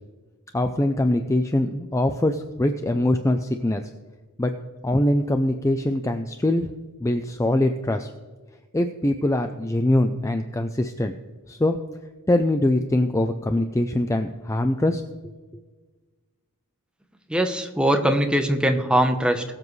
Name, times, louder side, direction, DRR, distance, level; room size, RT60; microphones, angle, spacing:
voice 1, 0.5-3.8 4.4-4.5 4.8-6.7 7.0-8.1 8.7-11.2 11.5-11.8 12.3-15.0, left 1 dB, 15° left, 7 dB, 0.4 m, -23 dB
voice 2, 17.3-19.4, right 1 dB, 5° right, 5 dB, 0.9 m, -21 dB
21.5 x 7.5 x 3.2 m, 1.3 s
head